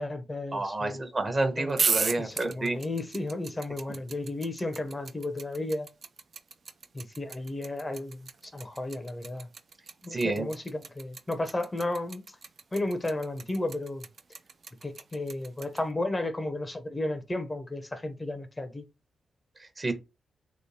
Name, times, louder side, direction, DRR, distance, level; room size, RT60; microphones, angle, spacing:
voice 1, 0.0-1.0 1.6-1.8 2.2-5.9 6.9-9.5 10.0-12.2 12.7-14.0 14.8-18.8, left 2 dB, 25° left, 0.6 m, -33 dB
voice 2, 0.5-2.8 10.1-10.5 19.6-19.9, right 2 dB, 40° right, 0.9 m, -29 dB
sound 1, 1.7-15.8, right 5 dB, 60° right, 0.4 m, -34 dB
3.1 x 2.9 x 2.7 m
cardioid pair, 55°, 0 cm